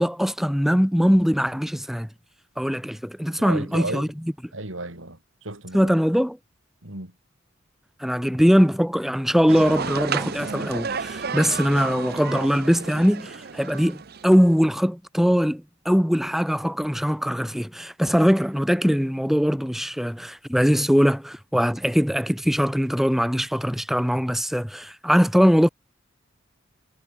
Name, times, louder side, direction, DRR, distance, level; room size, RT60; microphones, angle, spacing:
voice 1, 0.0-2.1 2.6-4.1 5.7-6.4 8.0-25.7, equal, ahead, 1.7 m, -21 dB
voice 2, 3.4-4.1 4.5-5.9 6.8-7.1, right 2 dB, 75° right, 4.8 m, -34 dB
sound 1, 9.5-14.6, right 5 dB, 50° right, 0.8 m, -32 dB
head